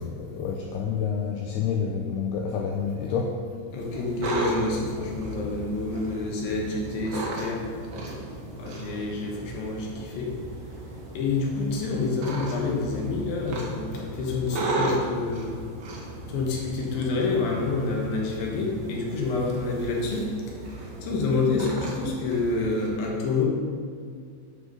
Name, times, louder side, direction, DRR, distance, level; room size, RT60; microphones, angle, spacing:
voice 1, 0.0-3.4 8.9-9.0, left 6 dB, 85° left, 1 dB, 2.2 m, -29 dB
voice 2, 3.7-7.6 8.1-8.2 8.5-10.3 11.1-15.6 16.3-20.3 20.6-23.5, left 3 dB, 65° left, -1 dB, 2.6 m, -28 dB
sound 1, 3.8-22.9, right 2 dB, 75° right, 1.7 m, -35 dB
9.3 x 6.8 x 5.3 m, 2.2 s
omnidirectional pair, 5.4 m